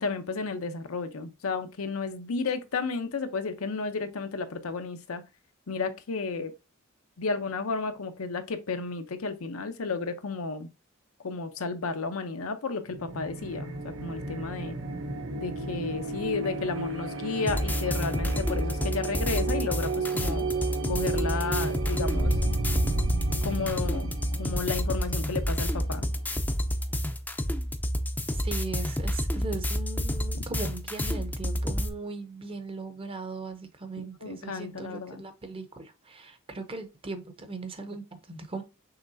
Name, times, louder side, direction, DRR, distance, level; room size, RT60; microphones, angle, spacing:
voice 1, 0.0-5.2 5.7-6.5 7.2-10.7 11.2-14.8 15.4-20.5 20.9-22.3 23.4-24.1 24.4-26.1 34.2-35.2, left 4 dB, 90° left, 0.7 m, -32 dB
sound 1, 12.9-26.4, right 2 dB, 80° right, 0.8 m, -33 dB
sound 2, 17.5-31.9, equal, 10° left, 0.4 m, -29 dB
voice 2, 28.3-38.6, right 3 dB, 25° right, 0.7 m, -39 dB
5.8 x 3.2 x 2.6 m
head